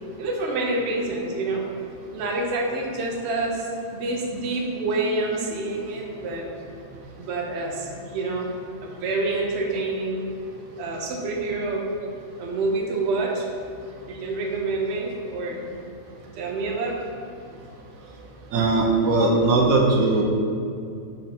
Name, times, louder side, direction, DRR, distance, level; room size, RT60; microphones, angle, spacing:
voice 1, 0.2-1.6 2.1-6.5 7.2-8.5 8.8-10.2 10.8-11.9 12.4-13.5 14.1-15.6 16.4-17.0, right 2 dB, 60° right, -1 dB, 0.8 m, -27 dB
voice 2, 18.5-20.2, right 3 dB, 80° right, 0 dB, 1.1 m, -19 dB
5.7 x 3.2 x 2.7 m, 2.5 s
omnidirectional pair, 1.4 m